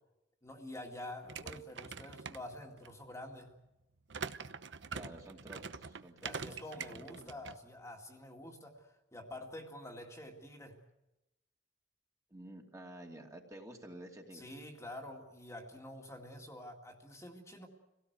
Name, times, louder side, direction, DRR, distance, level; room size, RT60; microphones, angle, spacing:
voice 1, 0.4-3.5 6.2-10.8 14.3-17.7, left 1 dB, 15° left, 1 dB, 2.2 m, -48 dB
sound 1, 1.2-2.9 4.1-7.6, right 5 dB, 80° right, 0.9 m, -44 dB
voice 2, 1.3-1.6 4.9-7.3 12.3-14.5, right 1 dB, 20° right, 1 dB, 2.6 m, -51 dB
26.5 x 17.5 x 8.1 m, 0.97 s
head